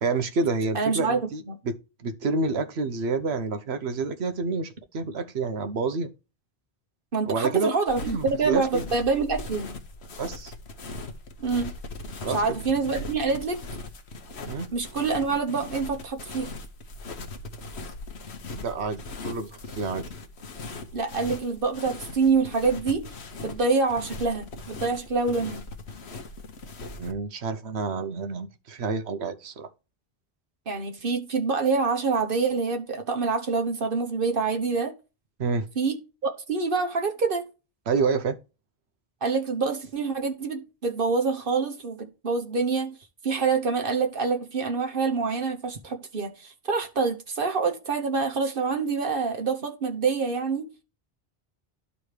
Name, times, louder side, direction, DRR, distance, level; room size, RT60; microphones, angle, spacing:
voice 1, 0.0-6.1 7.3-7.7 8.1-8.8 10.2-10.5 12.2-12.6 14.4-14.7 18.6-20.0 27.0-29.7 35.4-35.7 37.9-38.4, right 4 dB, 85° right, 1.2 m, -28 dB
voice 2, 0.7-1.6 7.1-9.8 11.4-11.7 12.3-13.6 14.7-16.5 20.9-23.0 23.4-25.6 30.7-34.9 35.8-37.4 39.2-43.0 43.2-50.7, right 4 dB, 60° right, 1.2 m, -26 dB
sound 1, 7.9-27.1, left 3 dB, 90° left, 1.3 m, -39 dB
12.5 x 4.1 x 3.2 m
omnidirectional pair, 1.1 m